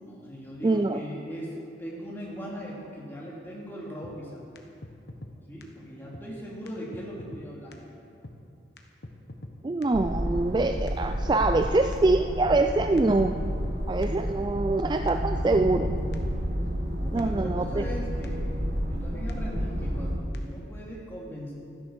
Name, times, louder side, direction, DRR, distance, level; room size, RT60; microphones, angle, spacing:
voice 1, 0.1-4.4 5.5-7.9 17.0-18.4 18.8-21.5, equal, 15° left, -5 dB, 2.9 m, -39 dB
voice 2, 0.6-1.0 9.6-13.3 13.9-16.0 17.1-17.8, right 2 dB, 25° right, 7 dB, 0.3 m, -24 dB
sound 1, 4.0-4.1 4.5-4.6 4.8-5.3 5.6-5.7 6.1-6.2 6.7-6.8 6.9-7.4 7.7-7.8 8.2-8.4 8.8-8.9 9.0-9.5 9.8-9.9 10.3-10.5 10.9-11.6 11.9-12.0 12.4-12.6 13.0-13.1 13.2-13.7 14.0-14.1 14.6-14.7 15.1-15.2 15.3-15.9 16.1-16.2 16.7-16.8 17.2-17.3 17.4-18.0 18.2-18.3 18.8-18.9 19.3-19.4 19.6-20.1 20.3-20.4, left 1 dB, 70° left, 1.2 m, -42 dB
sound 2, 9.9-20.2, equal, 75° right, 1.6 m, -30 dB
13.5 x 10.0 x 6.6 m, 2.6 s
head